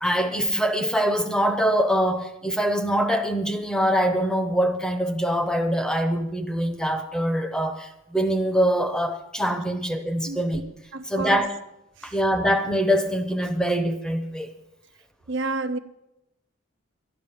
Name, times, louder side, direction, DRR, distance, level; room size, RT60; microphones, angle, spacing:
voice 1, 0.0-10.6 11.0-11.5 12.0-14.5, equal, 5° left, 0.8 m, -24 dB
voice 2, 10.9-11.4 12.0-12.1 15.3-15.8, right 2 dB, 55° right, 0.6 m, -29 dB
12.5 x 11.0 x 6.9 m
head